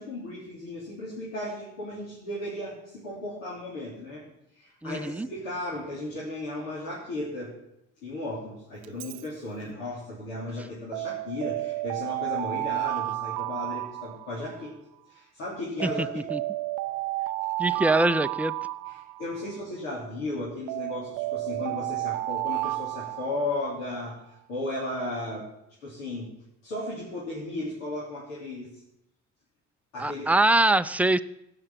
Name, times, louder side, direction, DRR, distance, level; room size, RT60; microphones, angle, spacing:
voice 1, 0.0-4.2 4.5-7.5 8.0-14.7 15.1-16.1 18.9-25.4 25.8-26.3 26.6-28.7 29.9-30.3, left 2 dB, 85° left, -6 dB, 3.4 m, -35 dB
voice 2, 4.8-5.3 15.8-15.9 16.3-16.4 17.6-18.5 30.0-31.2, right 2 dB, 5° right, 12 dB, 0.5 m, -23 dB
Alarm, 8.8-9.2 10.9-14.7 15.8-19.6 20.7-23.9, right 18 dB, 70° right, 0.6 m, -32 dB
16.5 x 5.9 x 7.4 m, 0.85 s
hypercardioid pair, 65°, 40 cm